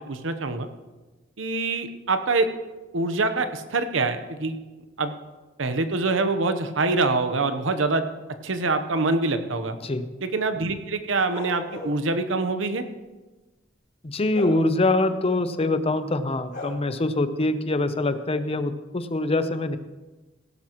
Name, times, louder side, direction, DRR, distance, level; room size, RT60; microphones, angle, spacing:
voice 1, 0.1-0.7 1.4-2.5 2.9-4.6 5.0-5.1 5.6-8.1 8.4-9.8 10.2-12.8, right 3 dB, 85° right, 9 dB, 0.9 m, -25 dB
sound 1, 11.3-12.0 14.3-14.6 16.5-16.7, left 2 dB, 55° left, 4.0 m, -35 dB
voice 2, 14.0-19.8, left 2 dB, 30° left, 11 dB, 0.7 m, -24 dB
16.0 x 12.0 x 3.0 m, 1.2 s
head